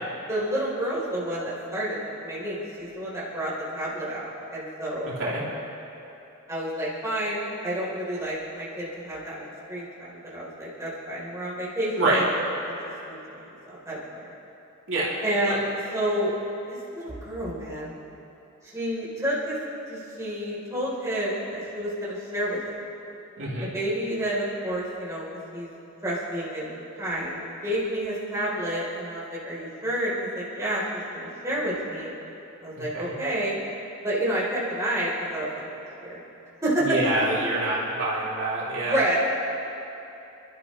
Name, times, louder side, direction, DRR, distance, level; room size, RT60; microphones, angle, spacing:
voice 1, 0.3-5.1 6.5-12.2 12.7-14.0 15.2-16.4 16.7-17.9 18.6-19.6 19.9-22.8 23.6-25.2 25.5-25.7 26.0-32.1 32.6-33.6 34.0-36.2 36.6-37.0 38.8-39.2, right 1 dB, 15° right, -7 dB, 3.7 m, -30 dB
voice 2, 23.4-23.7 32.8-33.2 36.8-39.2, right 2 dB, 55° right, -7 dB, 3.1 m, -26 dB
28.5 x 12.5 x 3.2 m, 2.9 s
head